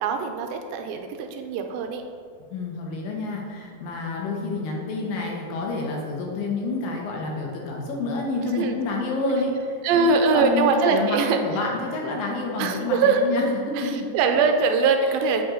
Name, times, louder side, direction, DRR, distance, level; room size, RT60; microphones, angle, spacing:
voice 1, 0.0-2.0 8.5-8.8 9.8-11.4 12.6-13.3 13.8-15.4, right 4 dB, 85° right, 5 dB, 2.3 m, -22 dB
voice 2, 2.5-13.4 13.8-14.1, left 3 dB, 75° left, -1 dB, 2.7 m, -28 dB
7.8 x 6.0 x 3.8 m, 2.2 s
omnidirectional pair, 4.2 m